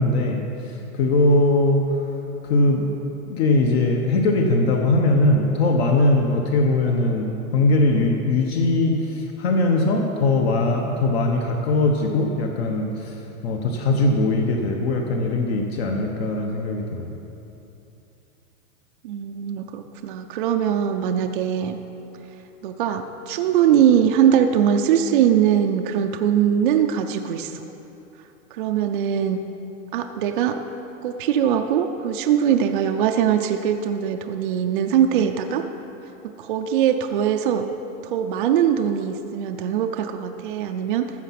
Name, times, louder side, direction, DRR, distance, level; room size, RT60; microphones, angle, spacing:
voice 1, 0.0-2.0 2.4-2.9 3.3-17.1, left 2 dB, 50° left, 2 dB, 1.0 m, -21 dB
voice 2, 19.0-21.8 22.6-27.6 28.5-29.4 29.9-30.6 31.0-35.6 36.4-37.7 38.0-41.1, right 9 dB, 40° right, 5 dB, 0.4 m, -21 dB
13.5 x 7.3 x 5.8 m, 2.9 s
supercardioid pair, 175°, 40 cm